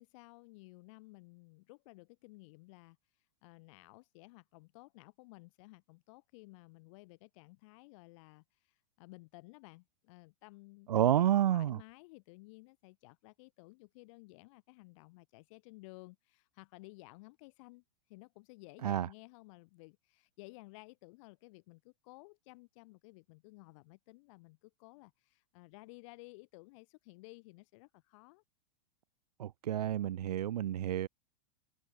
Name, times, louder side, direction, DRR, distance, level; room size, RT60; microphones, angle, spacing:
voice 1, 0.0-28.4, left 25 dB, 50° left, 1.6 m, -56 dB
voice 2, 10.9-11.8 18.8-19.1 29.4-31.1, right 11 dB, 70° right, 0.6 m, -29 dB
open air
figure-of-eight pair, 100°, 21 cm